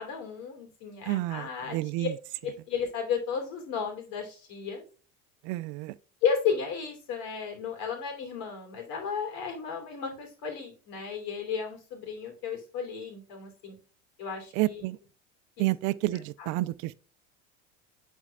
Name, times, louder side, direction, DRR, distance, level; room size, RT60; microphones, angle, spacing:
voice 1, 0.0-2.1 2.4-4.8 6.2-13.8 14.2-14.8 15.6-15.7 16.4-16.5, left 6 dB, 65° left, 3.1 m, -33 dB
voice 2, 1.0-2.1 5.4-6.0 14.5-15.0 15.6-16.9, right 18 dB, 60° right, 0.5 m, -30 dB
10.0 x 4.5 x 2.3 m
supercardioid pair, 95°, 38 cm